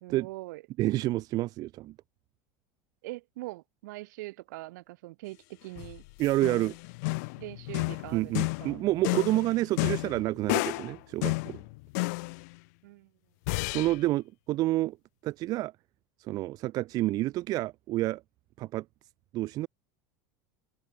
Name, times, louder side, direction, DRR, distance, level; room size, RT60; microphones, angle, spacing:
voice 1, 0.0-0.6 3.0-6.0 7.4-8.8 12.8-13.1, right 20 dB, 80° right, 2.5 m, -42 dB
voice 2, 0.8-1.9 6.2-6.7 8.1-11.6 13.7-15.0 15.2-15.7 16.2-18.2 18.6-18.8 19.3-19.7, right 17 dB, 40° right, 0.6 m, -29 dB
sound 1, 5.7-11.0 11.2-12.5 13.5-14.0, left 28 dB, 70° left, 0.5 m, -32 dB
open air
supercardioid pair, 145°, 9 cm